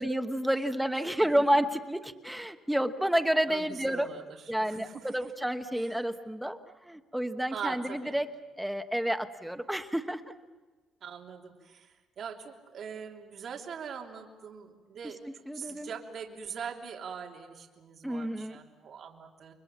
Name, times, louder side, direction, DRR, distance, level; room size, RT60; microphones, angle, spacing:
voice 1, 0.0-4.1 4.5-6.6 6.9-8.3 8.6-10.2 15.5-15.9 18.0-18.6, equal, 5° right, 8 dB, 1.1 m, -30 dB
voice 2, 3.5-5.2 5.8-6.0 7.5-8.2 11.0-19.5, right 7 dB, 50° right, 1 dB, 3.3 m, -42 dB
29.0 x 23.5 x 7.3 m, 1.3 s
cardioid pair, 135°, 0 cm